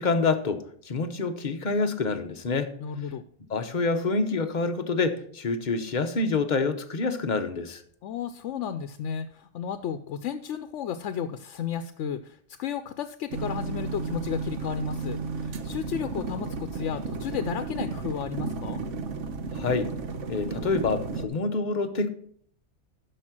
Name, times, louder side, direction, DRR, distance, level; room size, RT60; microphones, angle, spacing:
voice 1, 0.0-2.7 3.5-7.8 19.5-19.9 20.3-22.1, left 4 dB, 45° left, 7 dB, 1.0 m, -27 dB
voice 2, 2.8-3.2 8.0-18.8, left 8 dB, 85° left, 10 dB, 0.9 m, -33 dB
sound 1, 13.3-21.3, right 4 dB, 85° right, 1.2 m, -33 dB
12.5 x 5.0 x 6.0 m, 0.62 s
omnidirectional pair, 1.2 m